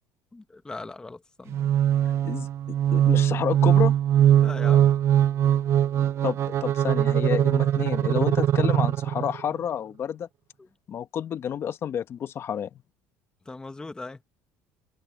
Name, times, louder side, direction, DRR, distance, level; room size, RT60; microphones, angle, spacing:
voice 1, 0.3-1.7 4.4-4.9 10.6-10.7 13.5-14.2, left 3 dB, 10° left, 1.1 m, -39 dB
sound 1, 1.5-9.4, right 10 dB, 45° right, 0.5 m, -21 dB
voice 2, 2.9-3.9 6.2-10.3 10.9-12.7, left 9 dB, 40° left, 1.1 m, -29 dB
cardioid pair, 130°, 7 cm